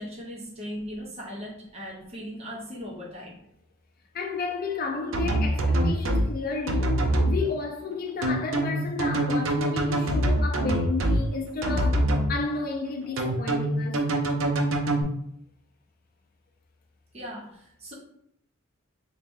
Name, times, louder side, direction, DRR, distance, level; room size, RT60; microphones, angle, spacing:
voice 1, 0.0-3.4 17.1-17.9, equal, 30° right, 0.8 m, -38 dB
voice 2, 4.1-14.1, left 4 dB, 45° left, 0.4 m, -32 dB
sound 1, 5.1-6.3 6.7-7.3 8.2-11.2 11.6-12.3 13.2-15.0, right 1 dB, 70° right, 0.6 m, -24 dB
3.2 x 2.8 x 3.6 m
head